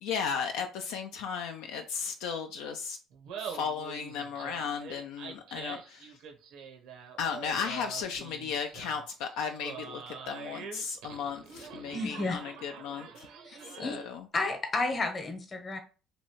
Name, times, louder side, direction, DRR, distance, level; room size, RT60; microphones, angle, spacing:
voice 1, 0.0-3.0 3.4-6.2 7.2-13.3 13.6-14.3, left 6 dB, 80° left, 0.3 m, -35 dB
Laughter, 3.1-14.2, right 6 dB, 80° right, 0.7 m, -45 dB
voice 2, 11.9-12.4 13.5-14.0 14.3-15.8, left 2 dB, 35° left, 0.9 m, -32 dB
3.1 x 2.6 x 3.0 m
supercardioid pair, 75°, 0 cm